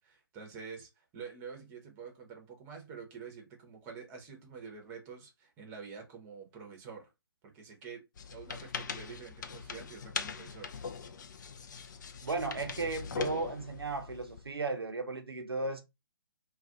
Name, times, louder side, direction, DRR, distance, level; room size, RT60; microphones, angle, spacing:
voice 1, 0.0-7.1 7.4-8.0 8.3-10.9, right 6 dB, 20° right, 0.8 m, -47 dB
sound 1, 8.2-14.5, left 5 dB, 50° left, 0.4 m, -41 dB
voice 2, 12.2-15.8, right 3 dB, 85° right, 0.7 m, -35 dB
2.4 x 2.3 x 3.6 m
figure-of-eight pair, 135°, 13 cm